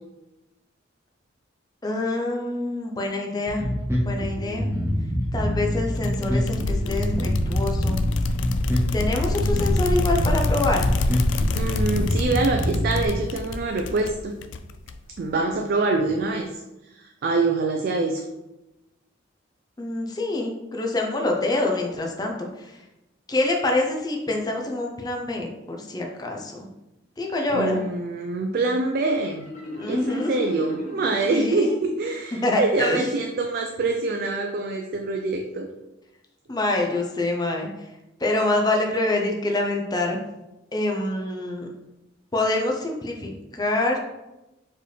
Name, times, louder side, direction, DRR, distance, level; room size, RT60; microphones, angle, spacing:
voice 1, 1.8-3.6 4.0-4.7 5.3-8.0 8.9-10.9 19.8-22.8 23.3-26.7 27.2-27.8 29.8-30.3 31.3-31.8 32.4-33.1 36.5-37.9 38.2-40.2 40.7-41.7 42.3-44.0, left 2 dB, 20° left, 1 dB, 0.5 m, -26 dB
Bass guitar, 3.5-13.1, equal, 15° right, 0.8 m, -25 dB
sound 1, 6.0-15.2, left 2 dB, 70° left, 0.3 m, -27 dB
voice 2, 11.6-14.3 15.2-16.5 16.9-18.2 27.5-29.5 29.9-35.7, right 3 dB, 50° right, 3 dB, 0.3 m, -25 dB
Marimba xylophone, 29.4-32.1, left 1 dB, 40° left, 1.1 m, -37 dB
4.5 x 3.4 x 3.2 m, 0.98 s
head